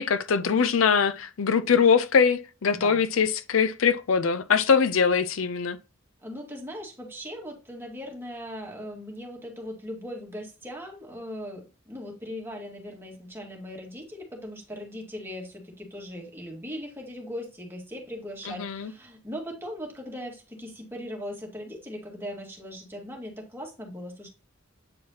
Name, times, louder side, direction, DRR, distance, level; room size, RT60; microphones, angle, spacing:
voice 1, 0.0-5.8 18.5-18.9, left 6 dB, 75° left, 0.5 m, -22 dB
voice 2, 6.2-24.3, equal, 10° right, 1.9 m, -39 dB
8.7 x 4.7 x 2.8 m
head